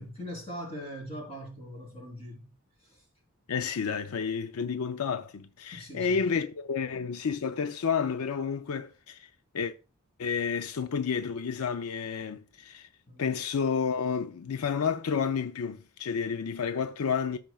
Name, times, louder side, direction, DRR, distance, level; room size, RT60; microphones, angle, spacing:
voice 1, 0.0-2.5 2.8-3.0 5.7-6.3 13.1-13.3, equal, 30° left, 3.6 m, -41 dB
voice 2, 3.5-9.3 9.5-9.7 10.2-12.9 13.2-17.4, left 6 dB, 80° left, 0.5 m, -30 dB
14.5 x 5.2 x 2.3 m
head